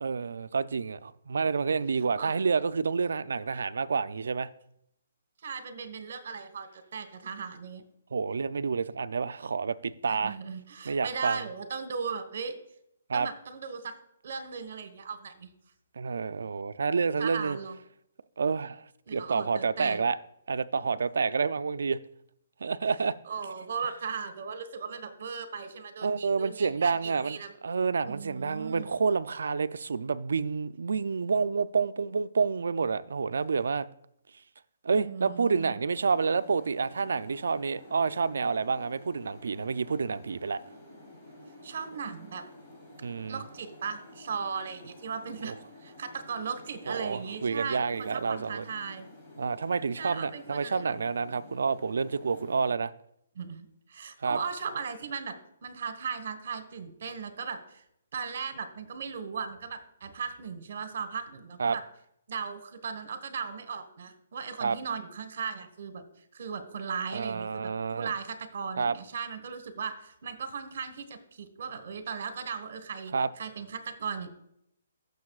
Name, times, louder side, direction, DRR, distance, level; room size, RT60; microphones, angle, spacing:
voice 1, 0.0-4.5 8.1-10.4 10.8-11.4 13.1-13.3 16.0-17.6 18.4-20.2 20.5-22.0 22.6-23.2 26.0-27.4 27.6-33.9 34.8-40.6 43.0-43.4 45.4-45.5 46.9-48.6 49.4-52.9 54.2-54.4 61.6-61.8 64.6-64.8 67.1-68.1 68.8-68.9 73.1-73.3, right 5 dB, 80° right, 0.4 m, -29 dB
voice 2, 5.4-7.8 10.1-12.5 13.1-13.9 14.2-15.5 17.2-17.8 19.1-20.0 23.3-27.5 28.0-28.9 35.0-35.8 41.6-42.4 43.3-45.5 45.8-49.1 50.0-51.0 51.3-51.4 53.3-53.6 53.9-55.4 55.6-57.8 58.1-61.8 62.3-66.0 66.3-67.7 68.0-74.3, right 6 dB, 60° right, 1.3 m, -37 dB
sound 1, 35.9-52.7, left 1 dB, 20° left, 3.1 m, -51 dB
15.5 x 6.8 x 2.4 m
hypercardioid pair, 160°, 0 cm